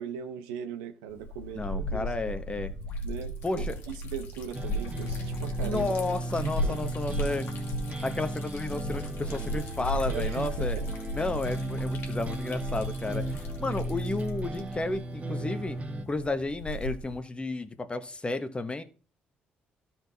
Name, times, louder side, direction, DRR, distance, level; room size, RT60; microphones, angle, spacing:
voice 1, 0.0-2.1 3.0-5.9 6.4-6.8 10.1-10.9, right 8 dB, 90° right, 0.9 m, -38 dB
Liquid, 1.1-17.2, equal, 75° left, 1.8 m, -35 dB
voice 2, 1.6-2.7 3.4-3.8 5.6-7.5 8.0-10.8 11.1-13.2 13.6-15.8 16.1-18.8, left 2 dB, 25° left, 1.2 m, -32 dB
sound 1, 4.5-16.0, right 2 dB, 35° right, 1.4 m, -36 dB
13.0 x 4.5 x 4.1 m
hypercardioid pair, 55°, 4 cm